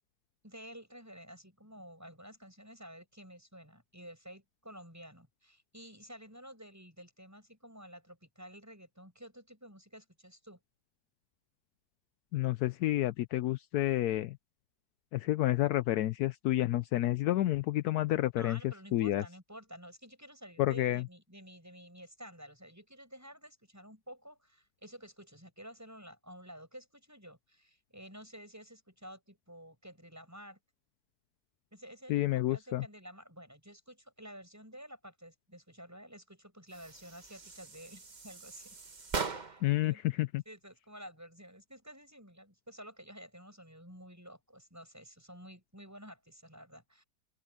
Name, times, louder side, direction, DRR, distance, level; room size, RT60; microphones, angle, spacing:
voice 1, 0.4-10.6 18.4-30.6 31.7-38.8 39.2-40.0 40.4-47.0, equal, 10° right, 8.1 m, -51 dB
voice 2, 12.3-14.4 15.1-18.6 18.9-19.2 20.6-21.0 32.1-32.9 39.6-40.4, left 15 dB, 75° left, 1.1 m, -30 dB
sound 1, 36.7-39.8, right 4 dB, 30° right, 1.2 m, -41 dB
open air
omnidirectional pair, 1.7 m